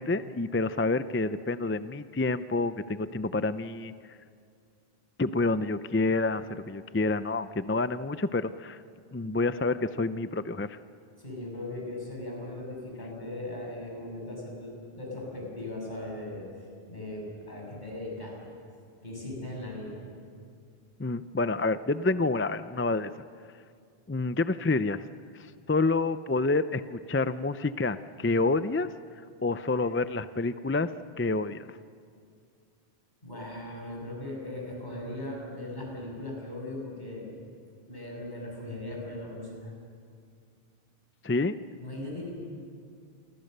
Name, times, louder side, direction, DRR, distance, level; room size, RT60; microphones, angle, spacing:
voice 1, 0.0-4.0 5.2-8.8 9.1-10.8 21.0-23.1 24.1-25.0 25.4-28.9 29.4-31.7 41.2-41.6, left 3 dB, 20° left, 12 dB, 0.3 m, -28 dB
voice 2, 11.2-16.5 16.9-18.3 19.0-20.0 29.7-29.9 33.2-37.3 37.9-39.7 41.8-42.3, left 1 dB, 45° left, -2 dB, 7.4 m, -38 dB
29.0 x 23.5 x 6.7 m, 2.2 s
omnidirectional pair, 1.1 m